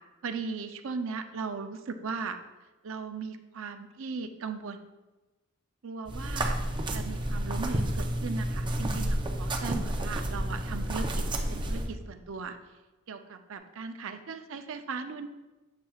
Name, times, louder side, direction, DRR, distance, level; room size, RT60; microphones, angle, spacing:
voice 1, 0.2-2.4 2.8-4.8 5.8-6.6 6.9-11.2 11.5-12.6 13.1-15.3, right 5 dB, 65° right, 7 dB, 0.5 m, -37 dB
sound 1, 6.1-11.9, right 1 dB, 20° right, 0.5 m, -30 dB
7.4 x 7.3 x 2.4 m, 1.1 s
head